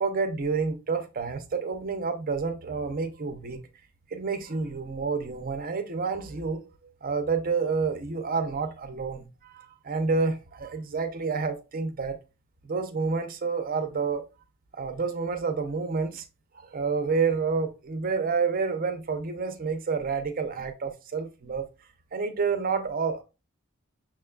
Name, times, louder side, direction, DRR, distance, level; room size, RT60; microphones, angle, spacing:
voice 1, 0.0-3.6 4.1-6.7 7.0-12.2 12.6-14.2 14.7-16.2 16.5-21.7 22.1-23.2, right 4 dB, 40° right, 0.5 m, -29 dB
5.8 x 2.3 x 2.2 m
head